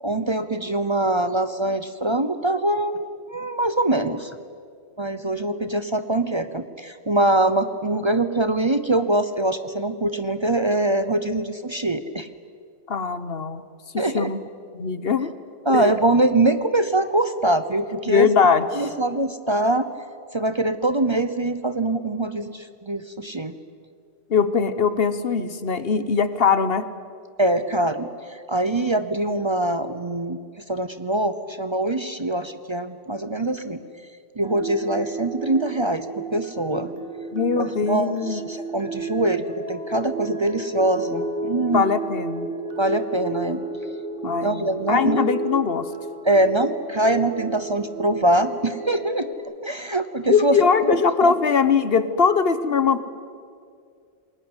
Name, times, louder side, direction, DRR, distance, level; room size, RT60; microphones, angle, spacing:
voice 1, 0.0-4.3 5.0-12.3 14.0-14.3 15.7-18.3 18.7-19.8 20.3-23.5 27.4-30.4 30.7-33.8 34.4-36.9 37.5-41.8 42.8-43.6 44.2-45.3 46.2-49.3 49.6-50.6 50.8-51.3, right 1 dB, 30° right, 11 dB, 0.9 m, -23 dB
voice 2, 12.9-13.6 13.9-14.4 14.7-15.3 15.7-15.9 18.1-18.9 24.3-26.8 37.3-38.4 41.7-42.5 44.2-45.9 50.3-53.0, left 6 dB, 65° left, 13 dB, 1.3 m, -21 dB
sound 1, 34.4-49.3, right 2 dB, 55° right, 2.1 m, -32 dB
28.5 x 21.0 x 8.1 m, 2.2 s
omnidirectional pair, 1.1 m